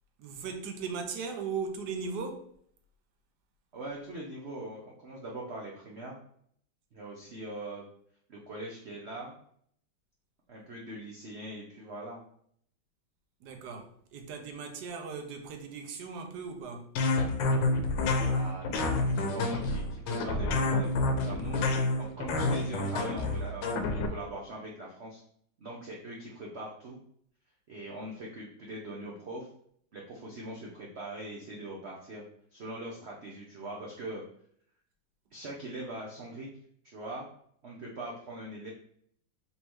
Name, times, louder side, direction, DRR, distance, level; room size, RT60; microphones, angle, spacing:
voice 1, 0.2-2.6 13.4-16.9, right 5 dB, 65° right, 1.1 m, -38 dB
voice 2, 3.7-6.2 6.9-7.8 8.3-9.3 10.5-12.2 18.1-25.2 25.6-27.0 27.7-29.5 29.9-32.2 32.5-34.2 35.3-36.5 36.8-37.3 37.6-38.7, right 1 dB, 85° right, 0.5 m, -42 dB
sound 1, 17.0-24.1, left 2 dB, 75° left, 1.3 m, -28 dB
4.0 x 3.6 x 3.0 m
omnidirectional pair, 2.1 m